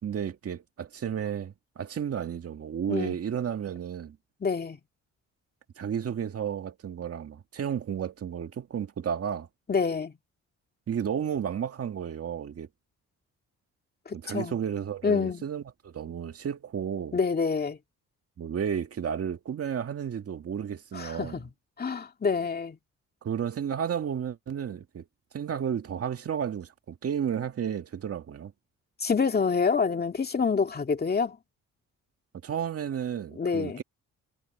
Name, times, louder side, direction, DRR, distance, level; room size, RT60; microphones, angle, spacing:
voice 1, 0.0-4.2 5.8-9.5 10.9-12.7 14.1-17.2 18.4-21.4 23.2-25.1 25.3-28.5 32.4-33.8, right 8 dB, 50° right, 2.0 m, -32 dB
voice 2, 4.4-4.8 9.7-10.1 14.1-14.5 15.0-15.4 17.1-17.8 20.9-21.4 21.8-22.8 29.0-31.4 33.4-33.8, left 5 dB, 30° left, 2.3 m, -27 dB
cardioid pair, 90°, 30 cm